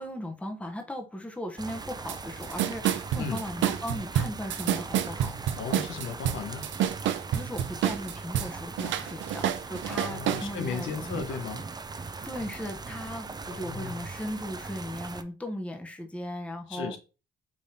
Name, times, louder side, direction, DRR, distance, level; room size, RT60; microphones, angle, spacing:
voice 1, 0.0-5.4 7.3-11.4 12.2-17.0, equal, 5° left, 0.8 m, -37 dB
sound 1, 1.6-15.2, right 4 dB, 20° right, 0.5 m, -40 dB
sound 2, 2.1-2.2 2.4-8.5 8.8-10.4, right 10 dB, 75° right, 0.5 m, -28 dB
voice 2, 5.6-6.7 9.9-11.6 13.5-14.1 16.7-17.0, left 5 dB, 75° left, 1.1 m, -35 dB
5.2 x 3.5 x 2.7 m
cardioid pair, 90°, 20 cm